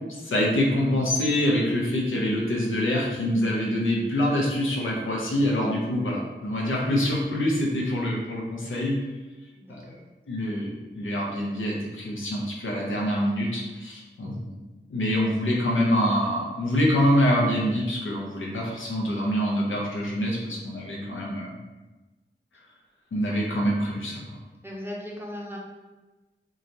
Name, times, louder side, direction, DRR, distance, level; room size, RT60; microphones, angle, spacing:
voice 1, 0.2-9.0 9.7-10.0 10.3-14.5 14.9-21.6 23.1-24.2, equal, 90° left, -3 dB, 0.6 m, -25 dB
voice 2, 9.5-10.0 24.6-25.6, left 1 dB, 10° right, -3 dB, 0.6 m, -37 dB
2.9 x 2.3 x 2.5 m, 1.2 s
wide cardioid pair, 55°, 20 cm